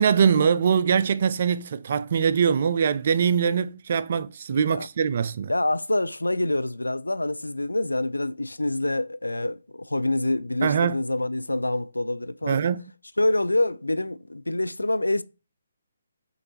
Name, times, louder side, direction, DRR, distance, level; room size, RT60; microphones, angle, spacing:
voice 1, 0.0-5.5 10.6-11.0 12.5-12.8, right 7 dB, 45° right, 0.3 m, -22 dB
voice 2, 5.5-12.6 13.2-15.2, left 2 dB, 85° left, 0.3 m, -26 dB
6.5 x 2.6 x 2.8 m
figure-of-eight pair, 140°, 0 cm